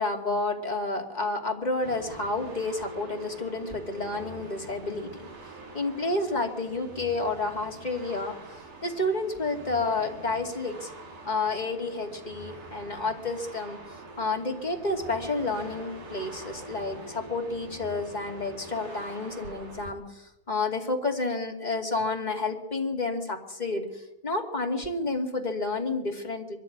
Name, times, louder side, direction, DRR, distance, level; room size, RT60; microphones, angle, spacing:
voice 1, 0.0-5.3 5.7-8.4 8.8-10.9 11.2-13.8 14.2-26.6, left 3 dB, 15° left, 2 dB, 2.1 m, -30 dB
sound 1, 1.8-19.9, right 2 dB, 65° right, 5.8 m, -45 dB
22.5 x 13.5 x 9.6 m, 0.84 s
omnidirectional pair, 4.0 m